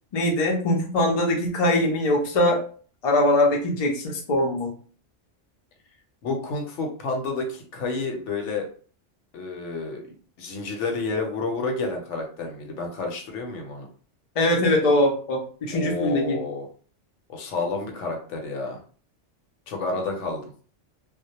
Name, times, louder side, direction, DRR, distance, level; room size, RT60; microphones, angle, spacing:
voice 1, 0.1-2.6 3.0-4.7 14.4-16.4, left 1 dB, 50° left, 1 dB, 0.5 m, -22 dB
voice 2, 6.2-8.7 9.3-10.0 10.4-13.9 15.7-16.7 17.3-18.8 19.7-20.4, left 3 dB, 75° left, 3 dB, 0.9 m, -30 dB
2.2 x 2.1 x 2.8 m, 0.43 s
omnidirectional pair, 1.2 m